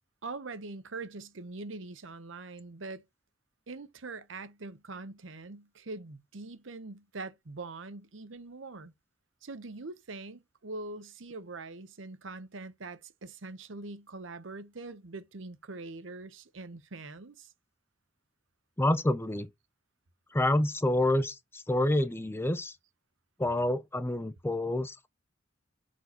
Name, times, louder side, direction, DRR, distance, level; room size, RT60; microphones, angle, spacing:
voice 1, 0.2-3.0 3.7-8.9 9.4-17.5, right 3 dB, 75° right, 0.9 m, -43 dB
voice 2, 18.8-19.5 20.3-22.8 23.4-25.1, left 1 dB, 10° left, 0.5 m, -28 dB
8.0 x 4.6 x 2.9 m
head